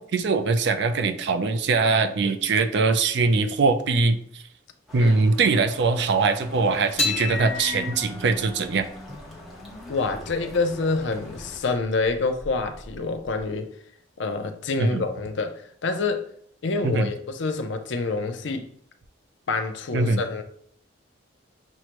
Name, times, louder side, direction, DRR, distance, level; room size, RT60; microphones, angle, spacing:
voice 1, 0.0-4.2 4.9-8.8 14.8-15.0 16.8-17.1 19.9-20.2, right 3 dB, 60° right, 0.4 m, -22 dB
sound 1, 4.9-11.6, left 1 dB, ahead, 0.8 m, -45 dB
sound 2, 7.0-13.5, left 3 dB, 35° left, 1.2 m, -34 dB
voice 2, 9.9-13.7 14.2-16.3 16.6-18.7 19.5-20.4, left 3 dB, 70° left, 0.5 m, -27 dB
6.2 x 2.1 x 2.9 m
head